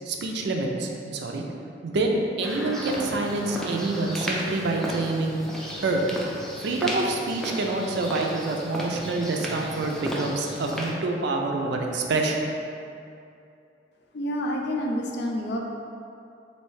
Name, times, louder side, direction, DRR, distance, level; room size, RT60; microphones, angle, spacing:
voice 1, 0.1-1.4 1.8-5.4 5.8-6.0 6.6-12.4, right 2 dB, 65° right, 1 dB, 0.4 m, -27 dB
sound 1, 2.4-10.9, equal, 5° left, 0.4 m, -34 dB
voice 2, 14.1-15.6, equal, 60° left, 0 dB, 0.4 m, -28 dB
3.2 x 2.7 x 3.1 m, 2.6 s
head